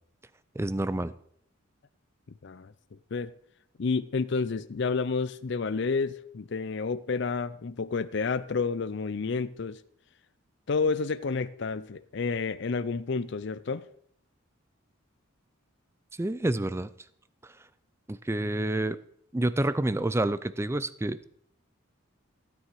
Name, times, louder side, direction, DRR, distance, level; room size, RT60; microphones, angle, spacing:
voice 1, 0.6-1.1 16.2-16.9 17.4-17.5 18.1-19.0 19.3-21.2, right 1 dB, 10° right, 0.4 m, -28 dB
voice 2, 3.8-9.8 10.7-13.9, left 4 dB, 55° left, 0.5 m, -30 dB
16.0 x 9.3 x 4.8 m
head